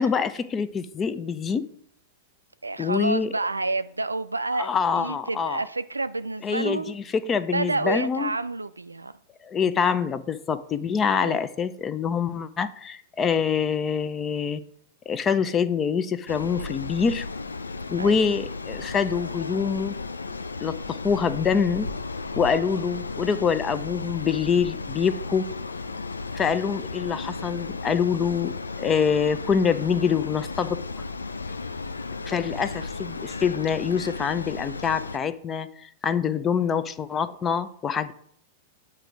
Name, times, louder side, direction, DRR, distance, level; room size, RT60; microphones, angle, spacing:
voice 1, 0.0-1.7 2.8-3.3 4.6-5.6 6.4-8.3 9.4-14.6 15.1-17.3 17.9-19.9 20.6-21.9 22.4-25.5 26.3-30.8 32.3-38.1, left 6 dB, 20° left, 0.5 m, -25 dB
voice 2, 2.6-6.9 7.5-9.1 11.1-11.4 18.0-18.3 22.5-22.7, right 3 dB, 85° right, 0.3 m, -29 dB
sound 1, 16.3-35.2, left 3 dB, 80° left, 0.4 m, -34 dB
8.8 x 3.0 x 4.8 m
figure-of-eight pair, 100°, 0 cm